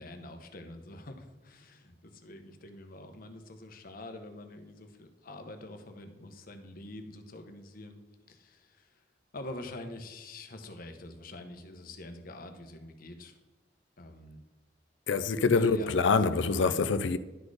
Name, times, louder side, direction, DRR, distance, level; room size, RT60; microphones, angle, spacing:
voice 1, 0.0-8.0 8.3-9.0 9.3-13.4 14.0-14.4 15.5-16.0, left 1 dB, 50° left, 0.9 m, -46 dB
voice 2, 15.1-17.2, left 4 dB, 75° left, 0.4 m, -25 dB
11.5 x 4.2 x 4.8 m
head